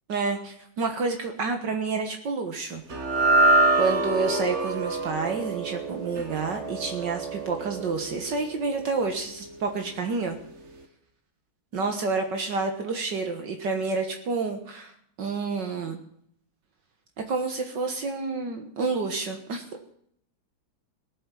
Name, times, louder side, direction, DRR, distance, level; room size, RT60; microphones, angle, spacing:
voice 1, 0.1-2.8 3.8-10.4 11.7-14.9 15.2-16.0 17.3-19.6, right 4 dB, 65° right, 5 dB, 2.0 m, -29 dB
sound 1, 2.9-9.3, right 2 dB, 40° right, 1.6 m, -26 dB
18.0 x 7.6 x 8.4 m, 0.68 s
omnidirectional pair, 2.1 m